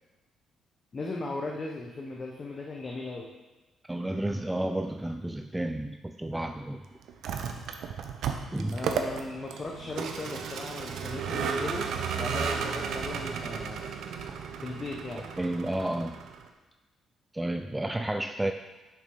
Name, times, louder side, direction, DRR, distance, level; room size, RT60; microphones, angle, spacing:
voice 1, 0.9-3.3 8.7-11.9 12.2-13.9 14.6-15.3, left 2 dB, 35° left, -1 dB, 1.0 m, -37 dB
voice 2, 3.9-6.8 8.5-8.8 15.4-16.2 17.3-18.5, right 1 dB, 10° right, 6 dB, 0.4 m, -31 dB
Vehicle, 7.1-16.5, right 6 dB, 75° right, 0.8 m, -34 dB
6.9 x 6.2 x 5.4 m, 1.1 s
cardioid pair, 90°, 0 cm